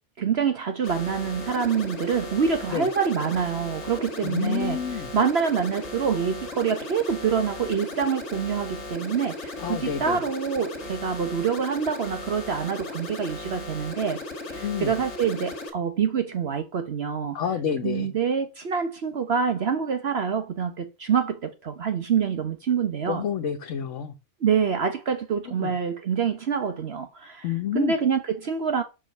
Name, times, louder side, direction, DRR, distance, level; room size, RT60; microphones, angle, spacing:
voice 1, 0.2-4.8 5.1-14.2 14.5-17.4 17.8-23.2 24.4-27.4 27.7-28.8, right 6 dB, 60° right, 1.1 m, -26 dB
sound 1, 0.8-15.7, left 2 dB, 70° left, 2.0 m, -37 dB
voice 2, 4.2-5.1 9.6-10.2 14.6-15.0 17.3-18.1 23.1-24.1 25.4-25.7 27.4-27.9, left 8 dB, 90° left, 1.3 m, -29 dB
6.3 x 5.0 x 6.5 m
omnidirectional pair, 1.2 m